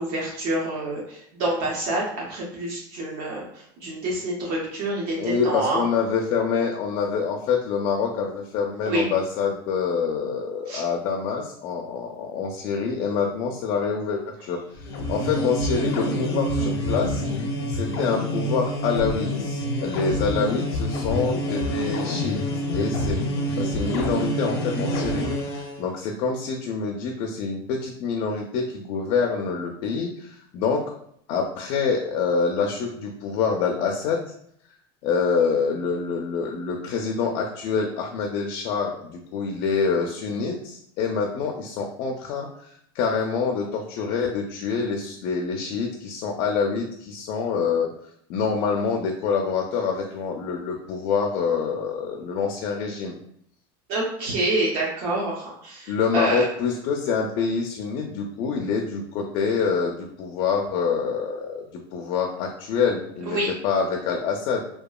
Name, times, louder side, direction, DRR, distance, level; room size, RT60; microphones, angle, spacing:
voice 1, 0.0-3.4 3.8-5.8 8.8-9.1 10.7-10.8 53.9-56.4 63.2-63.5, right 1 dB, 55° right, -3 dB, 0.7 m, -27 dB
voice 2, 5.2-17.2 17.7-22.4 22.7-23.2 23.6-30.8 31.3-34.2 35.0-47.9 48.3-53.2 55.9-63.4 63.6-64.6, left 5 dB, 45° left, 1 dB, 0.4 m, -26 dB
sound 1, 14.8-25.8, equal, 90° left, 0.6 m, -27 dB
2.8 x 2.3 x 2.3 m, 0.69 s
supercardioid pair, 150°, 13 cm